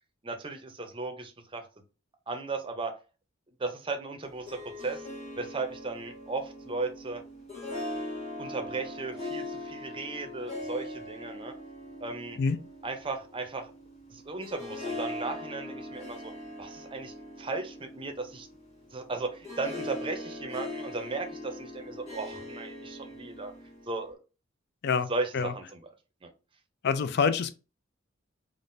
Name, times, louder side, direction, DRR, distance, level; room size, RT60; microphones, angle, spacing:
voice 1, 0.2-1.7 2.3-2.9 3.6-5.1 5.4-7.2 8.4-11.5 12.0-12.4 12.8-13.7 14.1-16.3 16.6-18.5 18.9-23.5 23.9-24.2 25.1-25.9 26.2-26.3, right 3 dB, 25° right, 0.6 m, -36 dB
Harp, 4.2-24.1, left 1 dB, 35° left, 1.5 m, -41 dB
voice 2, 26.8-27.5, left 5 dB, 55° left, 0.4 m, -26 dB
3.6 x 2.4 x 2.5 m
head